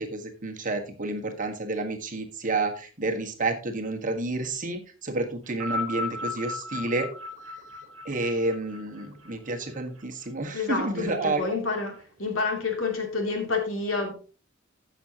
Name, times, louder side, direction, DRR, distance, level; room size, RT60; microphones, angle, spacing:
voice 1, 0.0-7.1 8.0-11.6, right 2 dB, 40° right, 1.6 m, -30 dB
sound 1, 5.5-10.0 10.9-11.0, left 3 dB, 80° right, 1.3 m, -35 dB
voice 2, 10.5-14.1, left 4 dB, 75° left, 2.9 m, -29 dB
15.5 x 6.2 x 2.9 m
head